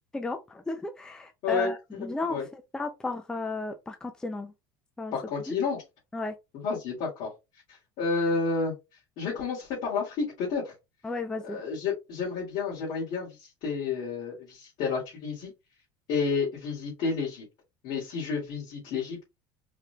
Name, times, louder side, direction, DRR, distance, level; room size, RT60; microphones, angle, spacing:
voice 1, 0.1-4.5 5.0-5.1 5.5-5.6 6.1-6.4 11.0-11.6, left 3 dB, 5° left, 0.4 m, -34 dB
voice 2, 1.4-2.4 5.1-5.8 6.5-7.3 7.7-8.7 9.2-10.7 11.4-15.5 16.1-17.4 17.8-19.2, left 4 dB, 55° left, 2.2 m, -30 dB
4.8 x 3.2 x 2.3 m
cardioid pair, 150°, 11 cm